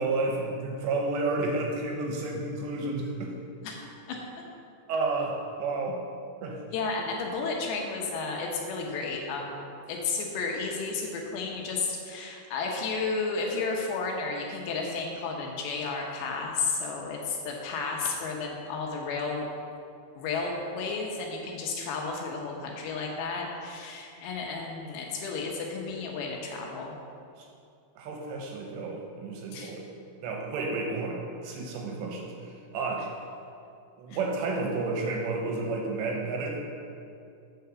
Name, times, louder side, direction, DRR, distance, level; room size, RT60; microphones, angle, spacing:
voice 1, 0.0-3.3 4.9-6.0 6.4-6.6 27.4-27.5 28.0-29.9 30.2-33.1 34.0-36.6, right 3 dB, 75° right, 1 dB, 2.8 m, -31 dB
voice 2, 3.6-4.2 6.7-19.5 20.2-26.9 29.5-29.7 34.1-34.2, left 4 dB, 75° left, 0 dB, 2.9 m, -32 dB
8.0 x 5.7 x 6.8 m, 2.5 s
omnidirectional pair, 5.5 m